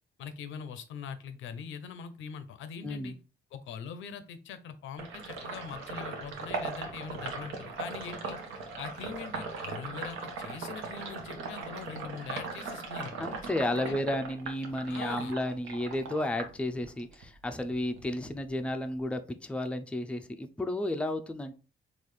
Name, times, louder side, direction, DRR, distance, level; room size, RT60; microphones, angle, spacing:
voice 1, 0.2-3.1 3.5-8.4 8.8-13.3 13.8-14.0 14.9-15.3, left 6 dB, 80° left, 11 dB, 0.6 m, -42 dB
voice 2, 2.8-3.2 13.2-21.5, left 1 dB, 5° left, 8 dB, 0.4 m, -32 dB
Sink (filling or washing), 5.0-17.2 17.6-19.0, right 4 dB, 85° right, 0.9 m, -39 dB
3.9 x 2.4 x 3.1 m, 0.35 s
cardioid pair, 90°, 20 cm